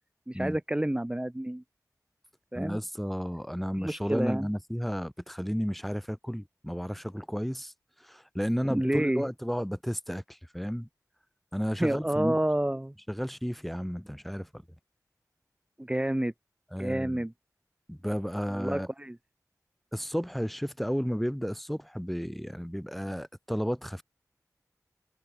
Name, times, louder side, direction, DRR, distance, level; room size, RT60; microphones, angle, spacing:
voice 1, 0.3-1.6 2.5-2.8 3.8-4.5 8.6-9.2 11.8-12.9 15.8-16.3 16.8-17.3 18.5-19.2, right 1 dB, 15° right, 1.9 m, -29 dB
voice 2, 2.5-7.7 8.1-10.9 11.5-12.4 13.1-14.5 16.7-17.2 17.9-18.9 19.9-24.0, equal, ahead, 2.6 m, -32 dB
wide cardioid pair, 65°, 7 cm